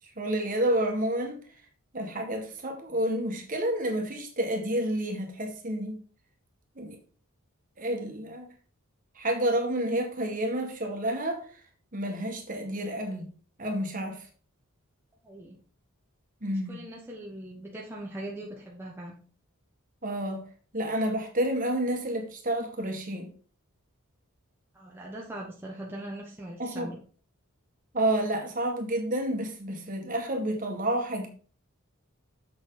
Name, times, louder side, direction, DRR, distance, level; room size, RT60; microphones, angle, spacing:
voice 1, 0.2-1.4 1.9-6.0 6.8-7.0 7.8-8.5 9.1-11.6 11.9-13.3 13.6-14.3 16.4-16.8 20.0-20.4 20.7-23.3 26.6-26.9 27.9-31.3, right 1 dB, 35° right, 1.6 m, -29 dB
voice 2, 15.2-15.6 16.4-19.2 24.7-27.0, right 1 dB, 10° right, 1.1 m, -41 dB
7.1 x 6.8 x 3.9 m
head